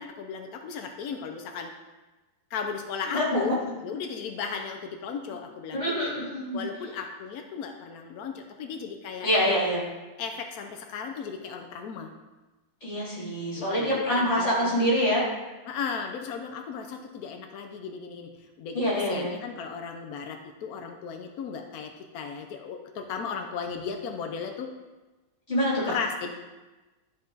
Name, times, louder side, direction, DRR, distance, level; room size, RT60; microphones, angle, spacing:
voice 1, 0.0-1.7 2.5-6.2 6.5-9.3 10.2-12.1 13.6-14.9 15.6-18.8 19.1-24.7 25.8-26.3, left 6 dB, 80° left, 4 dB, 0.8 m, -36 dB
voice 2, 3.1-3.5 5.7-6.7 9.2-9.8 12.8-15.2 18.7-19.4 25.5-25.9, equal, 30° left, -7 dB, 3.2 m, -26 dB
12.0 x 4.1 x 3.9 m, 1.1 s
omnidirectional pair, 2.3 m